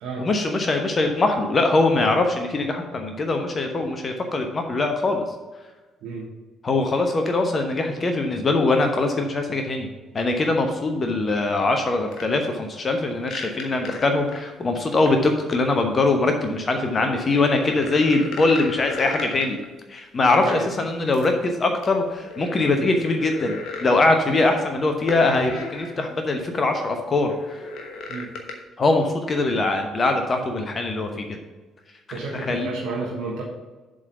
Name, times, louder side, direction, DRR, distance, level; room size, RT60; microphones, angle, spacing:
voice 1, 0.2-5.2 6.6-9.9 10.1-19.6 19.9-27.6 28.8-31.4 32.1-32.7, left 2 dB, 35° left, 5 dB, 0.9 m, -22 dB
sound 1, 12.1-12.2 13.2-14.5 15.1-15.2 16.7-19.7 20.5-20.7 21.1-21.3 21.8-23.9 25.1-26.0 26.4-26.5 27.3-28.5, left 3 dB, 55° left, 1.1 m, -35 dB
voice 2, 20.3-20.7 22.7-22.9 28.1-28.3 31.1-31.2 32.1-33.4, right 3 dB, 60° right, -3 dB, 1.1 m, -31 dB
7.5 x 3.9 x 6.8 m, 1.2 s
figure-of-eight pair, 45°, 0 cm